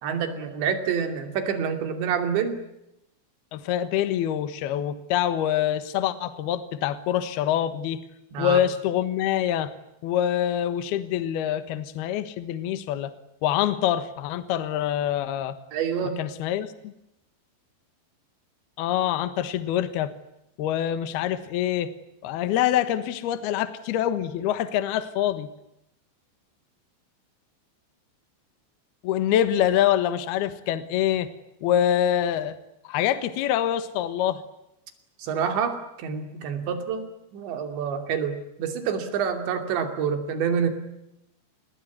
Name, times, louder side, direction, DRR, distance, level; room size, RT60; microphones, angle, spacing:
voice 1, 0.0-2.6 8.3-8.7 15.7-16.2 35.2-40.7, right 7 dB, 70° right, 7 dB, 4.9 m, -27 dB
voice 2, 3.5-8.0 8.4-9.7 10.0-13.1 13.4-15.6 16.2-16.9 18.8-20.1 20.6-21.9 22.2-25.5 29.0-31.3 31.6-32.5 32.8-34.4, left 11 dB, 70° left, 12 dB, 3.0 m, -25 dB
28.5 x 20.5 x 9.5 m, 0.85 s
omnidirectional pair, 5.3 m